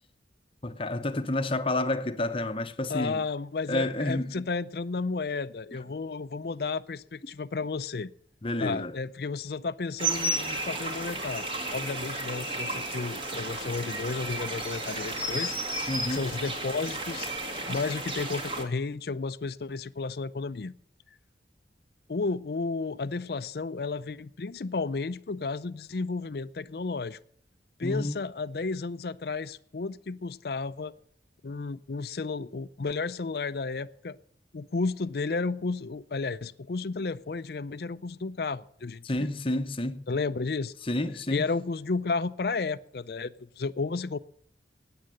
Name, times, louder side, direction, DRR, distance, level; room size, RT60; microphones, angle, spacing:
voice 1, 0.6-3.2 3.7-4.4 8.4-9.0 15.9-16.3 27.8-28.2 39.0-40.0 40.8-41.4, left 1 dB, 30° left, 0.8 m, -30 dB
voice 2, 2.9-8.1 8.6-15.5 16.1-17.3 17.7-20.7 22.1-27.2 27.8-30.9 31.4-34.2 34.5-39.3 40.1-40.7 41.3-44.2, left 4 dB, 60° left, 0.5 m, -32 dB
sound 1, 10.0-18.6, right 2 dB, 30° right, 2.0 m, -33 dB
14.5 x 9.6 x 7.7 m
head